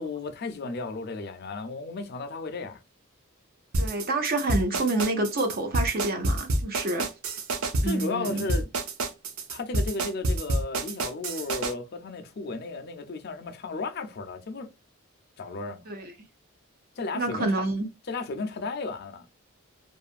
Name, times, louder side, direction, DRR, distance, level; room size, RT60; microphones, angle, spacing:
voice 1, 0.0-2.8 7.8-8.7 9.5-14.7 15.4-15.8 17.0-17.7 18.1-19.3, left 3 dB, 50° left, 0.4 m, -34 dB
sound 1, 3.7-11.7, right 2 dB, 90° right, 0.5 m, -28 dB
voice 2, 3.8-7.1 7.8-8.4 15.9-16.1 17.1-17.9, right 2 dB, 45° right, 0.5 m, -28 dB
2.6 x 2.4 x 2.4 m
head